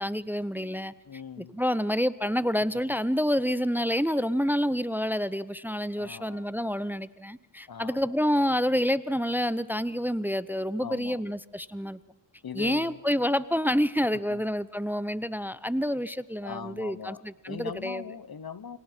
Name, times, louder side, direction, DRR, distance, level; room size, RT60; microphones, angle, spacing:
voice 1, 0.0-0.9 1.4-12.0 12.5-18.0, equal, 5° right, 0.7 m, -28 dB
voice 2, 1.0-1.8 5.9-6.5 7.7-8.2 10.8-11.2 12.4-13.0 14.1-14.5 16.4-18.8, left 7 dB, 60° left, 1.0 m, -41 dB
29.0 x 25.5 x 4.5 m
wide cardioid pair, 55°, 41 cm